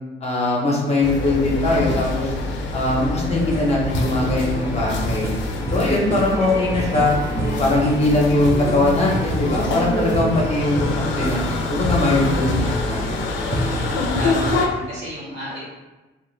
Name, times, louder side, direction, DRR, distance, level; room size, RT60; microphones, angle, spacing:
voice 1, 0.2-2.3 2.7-5.3 5.7-7.1 7.6-10.9 11.1-13.2, left 2 dB, 30° left, -3 dB, 0.7 m, -21 dB
sound 1, 1.0-14.7, left 3 dB, 70° left, 0.4 m, -26 dB
sound 2, 1.6-14.5, right 1 dB, 15° right, 0.4 m, -28 dB
voice 2, 14.2-15.6, equal, 65° right, -6 dB, 1.2 m, -31 dB
2.2 x 2.1 x 3.1 m, 1.1 s
cardioid pair, 90°, 20 cm